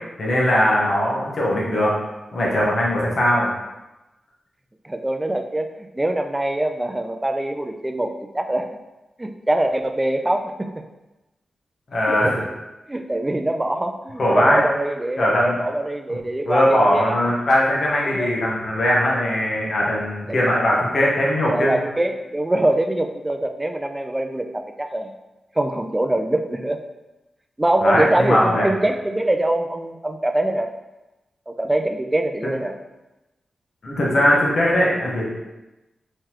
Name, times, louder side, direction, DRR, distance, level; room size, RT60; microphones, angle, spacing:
voice 1, 0.2-1.9 2.3-3.5 11.9-12.4 14.2-14.6 15.2-15.6 16.1-16.2 16.5-21.8 27.8-28.7 33.8-35.3, left 1 dB, 65° left, -4 dB, 1.1 m, -20 dB
voice 2, 4.8-8.8 9.2-10.7 12.1-12.6 12.9-17.2 18.1-18.3 20.3-20.4 21.5-25.1 25.6-26.8 27.6-30.7 31.5-32.7, right 1 dB, 20° right, 6 dB, 0.4 m, -23 dB
3.7 x 3.1 x 3.0 m, 1.0 s
cardioid pair, 55°, 0 cm